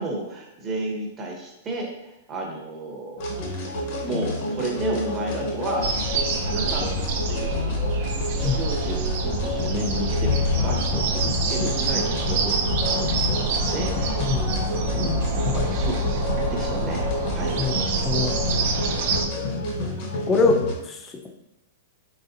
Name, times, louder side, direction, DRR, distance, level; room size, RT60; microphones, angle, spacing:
voice 1, 0.0-3.2 4.0-5.9 6.3-7.0 7.3-14.3 14.9-15.4 15.7-16.0 16.3-17.0 17.3-17.6, right 1 dB, 25° right, 0 dB, 0.8 m, -32 dB
sound 1, 3.2-20.7, left 2 dB, 50° left, 0.8 m, -30 dB
sound 2, 5.8-19.3, right 2 dB, 55° right, 0.5 m, -26 dB
voice 2, 14.2-14.5 15.4-15.8 17.6-17.7 18.0-18.4 20.2-21.3, left 4 dB, 20° left, 4 dB, 0.5 m, -24 dB
4.1 x 3.5 x 2.5 m, 0.92 s
hypercardioid pair, 145°, 0 cm